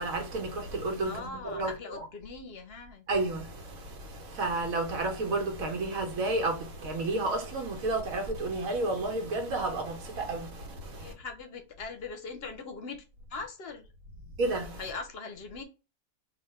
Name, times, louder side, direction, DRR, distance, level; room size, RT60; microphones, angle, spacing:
voice 1, 0.0-1.7 3.1-11.1 14.4-14.8, right 2 dB, 85° right, 1.4 m, -31 dB
voice 2, 1.0-3.0 11.0-13.0 13.3-13.8 14.8-15.6, left 4 dB, 60° left, 0.7 m, -41 dB
3.1 x 2.3 x 4.2 m
omnidirectional pair, 1.4 m